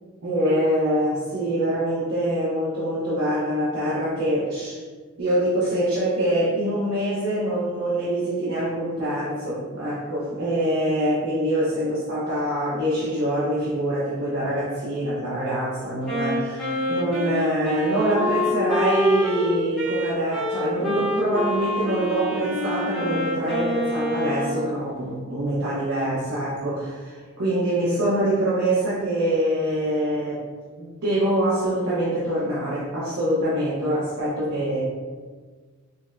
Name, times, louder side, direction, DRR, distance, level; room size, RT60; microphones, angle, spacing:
voice 1, 0.2-4.8 5.2-30.4 30.8-34.8, right 1 dB, 75° right, -9 dB, 0.9 m, -24 dB
Wind instrument woodwind instrument, 16.0-24.7, left 1 dB, 5° left, 0.8 m, -27 dB
5.0 x 2.1 x 2.5 m, 1.5 s
head